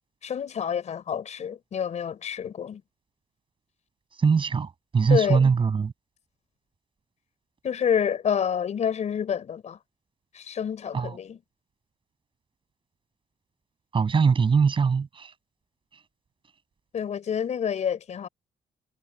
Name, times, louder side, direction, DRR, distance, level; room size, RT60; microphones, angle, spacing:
voice 1, 0.2-2.8 5.1-5.5 7.6-9.8 10.3-11.4 16.9-18.3, left 8 dB, 55° left, 5.3 m, -28 dB
voice 2, 4.2-5.9 10.9-11.1 13.9-15.3, right 5 dB, 35° right, 7.4 m, -22 dB
cardioid pair, 130°, 14 cm